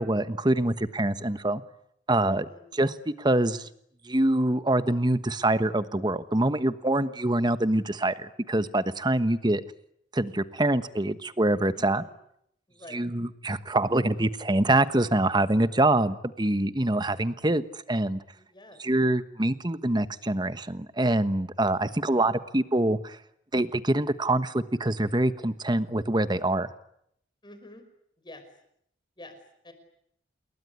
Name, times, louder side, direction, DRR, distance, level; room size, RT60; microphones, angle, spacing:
voice 1, 0.0-1.6 2.1-2.5 2.7-3.7 4.0-9.6 10.1-12.0 12.9-18.2 18.8-23.2 23.5-26.7, right 1 dB, 25° right, 12 dB, 1.2 m, -25 dB
voice 2, 2.2-2.6 11.7-12.1 12.7-13.1 18.4-18.8 22.0-22.3 27.4-27.8 28.2-28.4 29.2-29.4 29.6-29.7, left 1 dB, 25° left, 8 dB, 5.5 m, -48 dB
28.5 x 21.5 x 9.6 m, 0.74 s
head